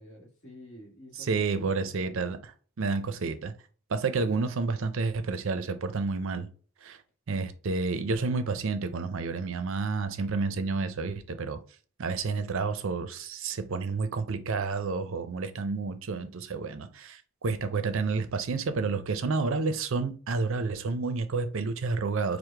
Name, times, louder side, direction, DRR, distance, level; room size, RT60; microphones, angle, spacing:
voice 1, 0.0-2.3, equal, 50° left, 1.3 m, -49 dB
voice 2, 1.1-2.5 2.8-3.5 3.9-6.5 6.8-7.0 7.3-11.6 12.0-22.4, right 4 dB, 60° right, 0.4 m, -30 dB
4.7 x 2.1 x 3.3 m
head